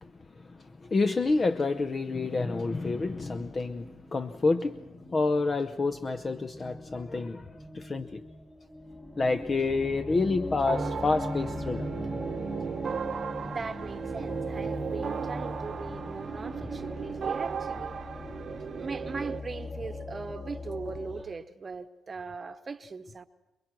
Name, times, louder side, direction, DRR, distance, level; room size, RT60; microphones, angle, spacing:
voice 1, 0.5-7.5 7.7-8.2 9.2-11.9, left 3 dB, 30° left, 0.8 m, -28 dB
sound 1, 2.8-21.2, left 1 dB, 10° left, 3.0 m, -41 dB
sound 2, 10.7-19.4, right 6 dB, 50° right, 0.8 m, -36 dB
voice 2, 13.4-18.0 18.7-23.3, right 4 dB, 35° right, 1.1 m, -39 dB
28.0 x 21.0 x 6.1 m
cardioid pair, 90°, 0 cm